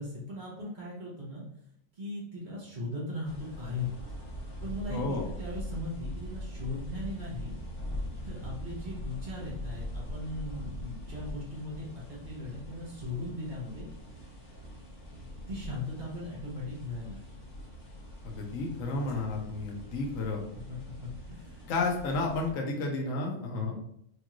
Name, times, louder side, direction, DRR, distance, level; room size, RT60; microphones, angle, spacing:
voice 1, 0.0-1.4 2.0-4.0 4.6-7.6 8.2-13.9 15.5-17.5 19.0-19.1 19.5-19.6 20.7-21.7 23.5-23.8, left 2 dB, 85° right, -5 dB, 0.4 m, -38 dB
sound 1, 3.2-22.5, equal, 15° left, 0.8 m, -42 dB
voice 2, 4.9-5.3 18.2-20.4 21.6-23.8, left 3 dB, 65° left, 0 dB, 0.8 m, -32 dB
4.9 x 2.4 x 3.0 m, 0.72 s
omnidirectional pair, 2.4 m